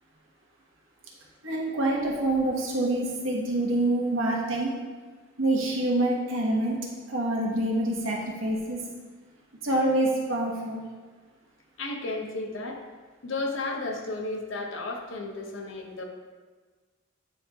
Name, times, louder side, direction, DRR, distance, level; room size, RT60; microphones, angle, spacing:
voice 1, 1.4-4.7 5.4-8.9 9.6-10.8, right 1 dB, 75° right, -4 dB, 1.2 m, -26 dB
voice 2, 11.8-12.8 13.2-16.1, left 2 dB, 65° left, 2 dB, 0.8 m, -33 dB
8.8 x 3.1 x 3.5 m, 1.4 s
head